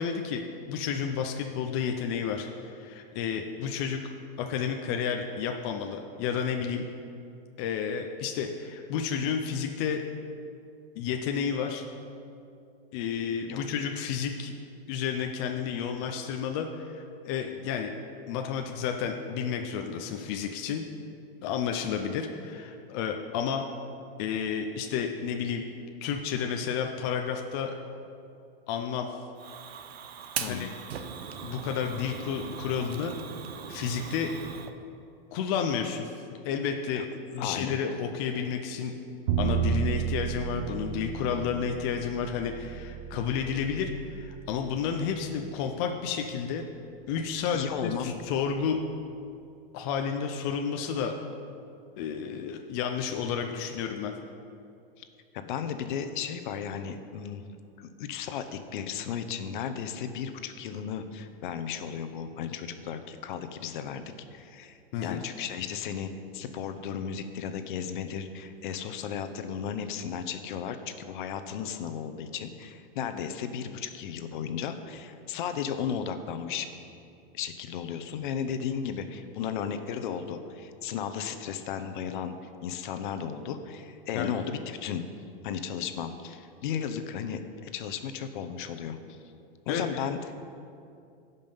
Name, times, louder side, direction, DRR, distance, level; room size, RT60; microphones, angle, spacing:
voice 1, 0.0-4.0 4.4-6.9 7.6-10.0 11.0-11.8 12.9-14.5 14.9-17.9 18.3-20.8 21.4-23.7 24.2-25.6 26.0-27.7 28.7-29.1 30.4-30.7 31.4-33.1 33.7-34.3 35.3-36.1 36.4-37.1 37.3-38.9 39.4-46.6 47.1-48.8 49.7-51.1 52.0-54.1 64.9-65.2 84.1-84.3 89.7-89.8, left 7 dB, 25° left, 3 dB, 0.4 m, -31 dB
Fire, 29.4-34.7, right 7 dB, 80° right, 0.9 m, -39 dB
voice 2, 30.4-30.7 36.9-37.0 37.4-37.8 47.5-48.1 55.0-55.1 55.3-57.4 57.8-64.0 64.3-76.7 77.3-82.4 82.6-85.0 85.4-89.2 89.7-90.2, left 8 dB, 55° left, 9 dB, 0.8 m, -35 dB
Bowed string instrument, 39.3-45.5, right 9 dB, 45° right, 0.6 m, -33 dB
16.0 x 5.4 x 5.4 m, 2.6 s
supercardioid pair, 160°, 30 cm